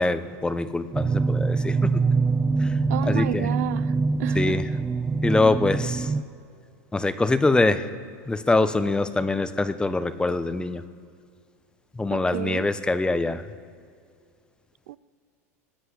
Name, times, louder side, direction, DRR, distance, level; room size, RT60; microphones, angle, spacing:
voice 1, 0.0-2.0 2.6-2.7 3.0-3.5 4.3-4.7 5.2-6.1 6.9-7.9 8.3-10.8 12.0-13.4, left 3 dB, 10° left, 12 dB, 0.9 m, -24 dB
sound 1, 0.9-6.2, right 4 dB, 15° right, 0.6 m, -24 dB
voice 2, 2.9-4.6 12.1-12.7 14.9-15.0, right 15 dB, 75° right, 18 dB, 0.5 m, -32 dB
18.5 x 8.1 x 8.1 m, 2.3 s
hypercardioid pair, 100°, 8 cm